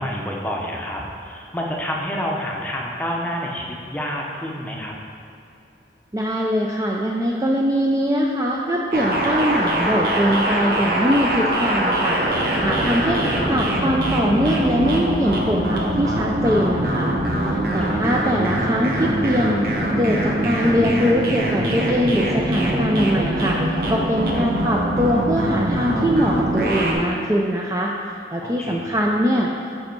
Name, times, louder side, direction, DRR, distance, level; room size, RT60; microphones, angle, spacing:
voice 1, 0.0-4.9 12.7-13.2 17.7-18.0 24.3-24.6 28.4-29.1, equal, 10° left, -2 dB, 0.7 m, -29 dB
voice 2, 6.1-13.2 13.5-27.9 28.3-29.5, equal, 20° right, -1 dB, 0.4 m, -22 dB
sound 1, 8.9-26.9, right 1 dB, 55° right, 1.0 m, -23 dB
7.8 x 5.1 x 4.5 m, 2.6 s
head